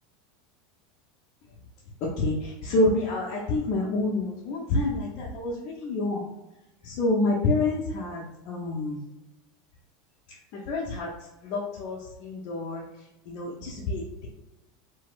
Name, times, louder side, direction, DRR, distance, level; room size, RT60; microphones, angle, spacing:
voice 1, 2.2-6.3 6.8-9.0 10.5-11.1 11.4-12.8 13.3-14.3, left 2 dB, 50° left, -4 dB, 0.6 m, -28 dB
4.1 x 2.0 x 2.5 m, 0.99 s
figure-of-eight pair, 80°, 0 cm